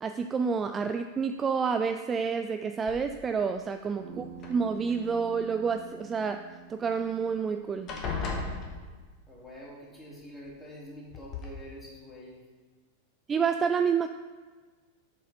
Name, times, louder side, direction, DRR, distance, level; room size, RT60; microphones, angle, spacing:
voice 1, 0.0-6.4 6.7-7.9 13.3-14.1, right 6 dB, 20° right, 8 dB, 0.3 m, -29 dB
sound 1, 2.9-3.4 4.3-5.1 6.9-7.0 7.3-7.5 7.9-9.3 10.5-10.6 11.1-11.5, left 4 dB, 35° left, 1.4 m, -36 dB
Bass guitar, 4.0-8.3, right 7 dB, 60° right, 1.4 m, -47 dB
voice 2, 9.3-12.4, equal, 10° left, -5 dB, 2.6 m, -46 dB
7.5 x 4.7 x 5.6 m, 1.4 s
figure-of-eight pair, 90°, 0 cm